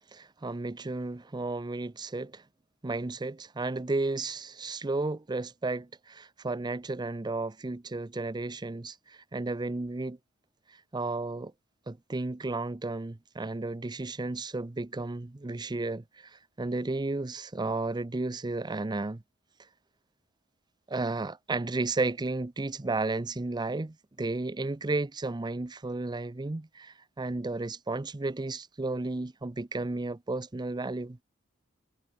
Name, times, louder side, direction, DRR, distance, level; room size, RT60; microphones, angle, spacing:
voice 1, 0.1-2.4 2.8-10.2 10.9-11.5 11.9-19.2 20.9-31.2, right 2 dB, 20° right, 0.6 m, -33 dB
head